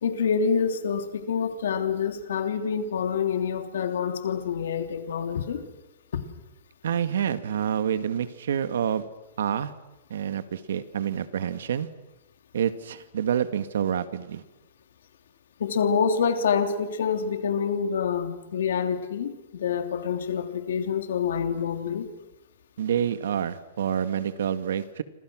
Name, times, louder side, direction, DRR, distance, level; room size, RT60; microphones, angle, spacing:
voice 1, 0.0-5.6 6.1-6.2 15.6-22.1, left 6 dB, 80° left, 6 dB, 3.2 m, -27 dB
voice 2, 6.8-9.1 9.4-9.7 10.1-11.9 12.5-14.4 22.8-25.0, right 9 dB, 80° right, 11 dB, 1.9 m, -27 dB
29.5 x 26.0 x 6.3 m, 0.98 s
supercardioid pair, 170°, 0 cm